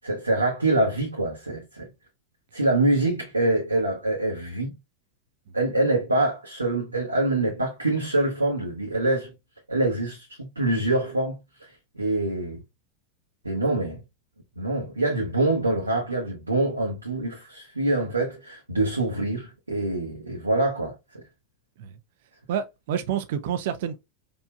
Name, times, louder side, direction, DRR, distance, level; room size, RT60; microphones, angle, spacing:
voice 1, 0.0-1.9 2.5-4.7 5.5-9.3 9.7-11.7 12.0-12.6 13.4-14.0 14.6-21.2, right 2 dB, 80° right, 0.9 m, -25 dB
voice 2, 22.5-24.0, right 9 dB, 55° right, 0.6 m, -28 dB
4.6 x 2.6 x 2.2 m
figure-of-eight pair, 90°, 0 cm